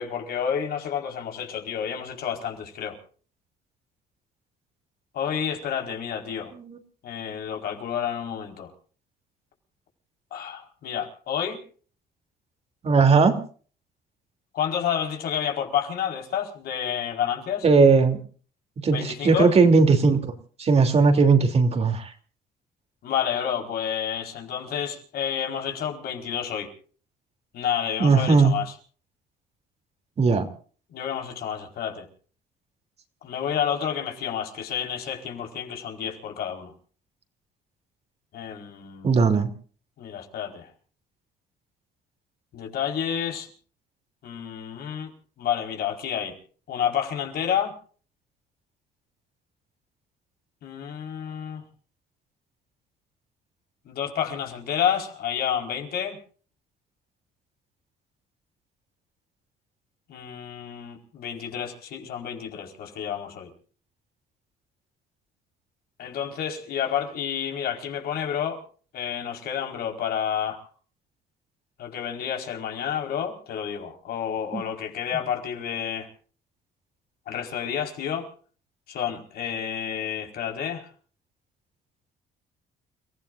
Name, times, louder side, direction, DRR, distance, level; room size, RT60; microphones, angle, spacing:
voice 1, 0.0-3.0 5.1-6.5 7.0-8.7 10.3-11.6 14.5-17.7 18.9-19.5 23.0-26.7 27.5-28.7 30.9-32.0 33.2-36.7 38.3-39.4 40.0-40.7 42.5-43.5 44.2-45.1 45.4-46.3 46.7-47.7 50.6-51.6 53.8-56.2 60.1-63.5 66.0-68.6 68.9-70.6 71.8-76.1 77.3-78.3 78.9-80.9, left 8 dB, 65° left, 3 dB, 4.7 m, -30 dB
voice 2, 12.8-13.4 17.6-18.2 18.8-20.3 20.6-22.1 28.0-28.5 30.2-30.5 39.0-39.5 74.5-74.6, right 4 dB, 40° right, 6 dB, 3.0 m, -18 dB
30.0 x 16.0 x 2.6 m, 0.43 s
cardioid pair, 110°, 17 cm